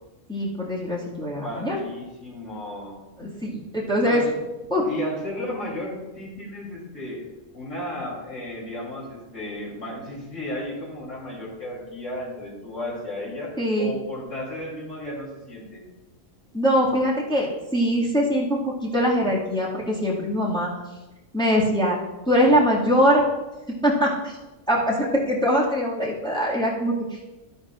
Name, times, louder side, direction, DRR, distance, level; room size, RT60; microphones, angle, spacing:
voice 1, 0.3-1.8 3.2-4.2 4.7-4.9 13.6-13.9 16.5-20.7 21.3-22.0 22.3-23.2 23.8-24.3 24.7-27.3, equal, 5° left, -6 dB, 2.0 m, -22 dB
voice 2, 1.4-3.0 4.0-4.4 4.8-7.2 7.5-15.8, left 1 dB, 75° left, -4 dB, 3.6 m, -34 dB
12.0 x 11.5 x 2.5 m, 1.1 s
omnidirectional pair, 1.3 m